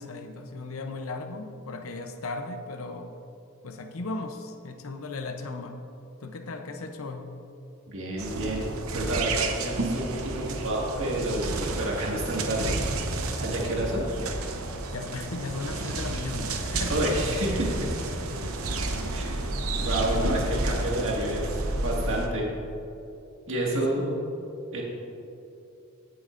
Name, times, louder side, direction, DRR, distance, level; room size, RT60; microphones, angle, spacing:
voice 1, 0.0-3.1 3.6-5.8 6.2-7.3 14.9-17.1 17.8-18.6 18.9-19.4 23.7-24.1, left 3 dB, 75° left, 5 dB, 0.7 m, -37 dB
voice 2, 7.9-8.7 8.9-12.7 13.2-14.0 16.9-17.7 19.1-22.5 23.5-24.3 24.7-24.8, right 1 dB, 65° right, -2 dB, 1.9 m, -29 dB
sound 1, 8.2-22.3, right 2 dB, 80° right, 0.8 m, -31 dB
16.5 x 7.7 x 2.6 m, 2.8 s
head